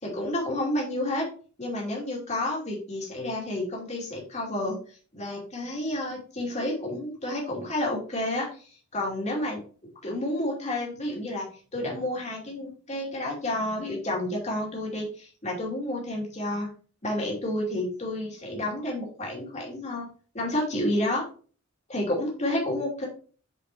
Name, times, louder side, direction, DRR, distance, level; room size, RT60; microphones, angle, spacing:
voice 1, 0.0-1.3 1.6-4.8 5.1-8.5 8.9-9.6 10.0-11.5 11.7-16.7 17.0-20.1 20.3-21.2 21.9-23.1, left 1 dB, 35° left, -2 dB, 2.5 m, -30 dB
8.0 x 5.2 x 2.9 m, 0.39 s
head